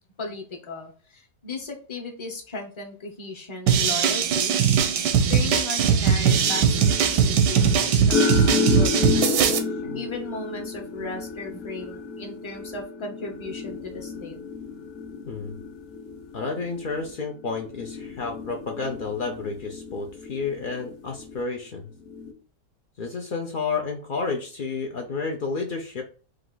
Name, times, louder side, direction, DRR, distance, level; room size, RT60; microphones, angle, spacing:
voice 1, 0.2-4.5 5.3-9.5 9.9-14.4, left 3 dB, 30° left, 1 dB, 0.5 m, -36 dB
sound 1, 3.7-9.6, right 7 dB, 90° right, 1.3 m, -20 dB
sound 2, 6.3-21.4 22.0-22.3, left 4 dB, 55° left, 0.9 m, -31 dB
voice 2, 15.3-15.6 16.3-21.9 23.0-26.0, left 4 dB, 85° left, 2 dB, 0.4 m, -31 dB
4.7 x 2.5 x 3.8 m, 0.38 s
omnidirectional pair, 1.8 m